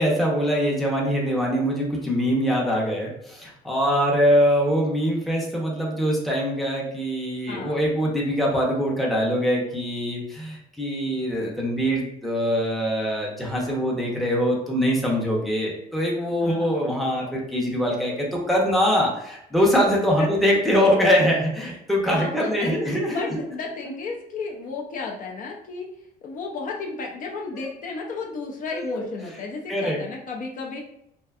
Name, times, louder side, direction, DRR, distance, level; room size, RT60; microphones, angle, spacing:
voice 1, 0.0-23.4 27.5-27.7 28.7-29.1 29.3-29.4 29.7-30.0, equal, ahead, -3 dB, 0.6 m, -23 dB
voice 2, 7.5-7.9 16.4-16.8 20.2-20.3 22.1-22.8 23.1-26.0 26.2-30.8, left 4 dB, 50° left, 0 dB, 0.4 m, -33 dB
2.6 x 2.2 x 2.3 m, 0.79 s
cardioid pair, 110°, 17 cm